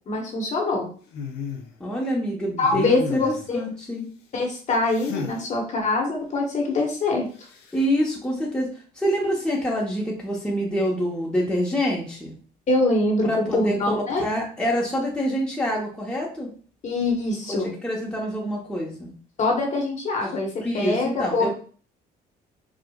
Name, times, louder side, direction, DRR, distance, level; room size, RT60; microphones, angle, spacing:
voice 1, 0.1-0.9 2.6-3.6 4.3-7.3 12.7-14.2 16.8-17.7 19.4-21.5, left 2 dB, 45° left, 0 dB, 1.3 m, -24 dB
sound 1, 1.1-1.7 2.6-3.5 4.9-5.4 7.4-7.8, left 5 dB, 80° left, 0.7 m, -33 dB
voice 2, 1.8-4.1 7.7-8.7 9.0-12.3 13.2-16.5 17.6-19.1 20.6-21.5, equal, 5° left, -3 dB, 1.0 m, -26 dB
4.9 x 2.4 x 2.4 m, 0.41 s
cardioid pair, 110°, 17 cm